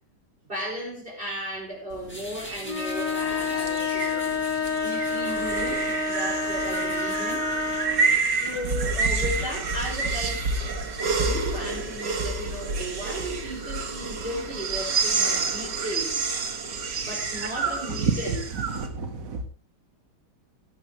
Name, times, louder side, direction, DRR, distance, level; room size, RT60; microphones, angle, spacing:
voice 1, 0.5-7.5 8.2-10.5 10.7-10.8 11.2-16.2 17.0-18.4, equal, 30° right, -6 dB, 5.5 m, -35 dB
sound 1, 1.9-18.9, right 4 dB, 85° right, 2.5 m, -29 dB
sound 2, 2.1-9.5, equal, 5° left, 6.0 m, -44 dB
sound 3, 2.6-8.1, left 4 dB, 70° left, 2.6 m, -28 dB
voice 2, 18.0-18.4 18.7-19.4, right 6 dB, 55° right, 7 dB, 1.6 m, -28 dB
19.0 x 12.5 x 3.2 m, 0.32 s
omnidirectional pair, 1.8 m